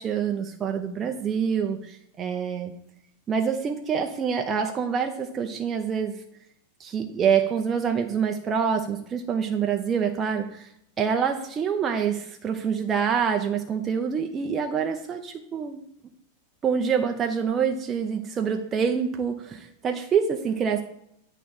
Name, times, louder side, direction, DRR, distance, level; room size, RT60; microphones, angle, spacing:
voice 1, 0.0-2.7 3.3-6.2 6.8-10.7 11.0-15.8 16.6-20.8, right 7 dB, 25° right, 3 dB, 0.6 m, -26 dB
8.5 x 3.3 x 5.8 m, 0.73 s
figure-of-eight pair, 90°, 0 cm